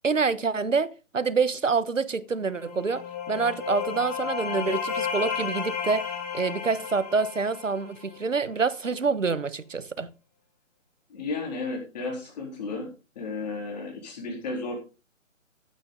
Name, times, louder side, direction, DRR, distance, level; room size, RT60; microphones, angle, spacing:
voice 1, 0.0-10.1, right 4 dB, 75° right, 1.3 m, -27 dB
sound 1, 2.5-8.2, left 7 dB, 15° left, 2.4 m, -33 dB
voice 2, 11.1-12.9 13.2-14.8, left 3 dB, 30° left, 4.0 m, -33 dB
15.5 x 8.4 x 3.9 m
figure-of-eight pair, 140°, 39 cm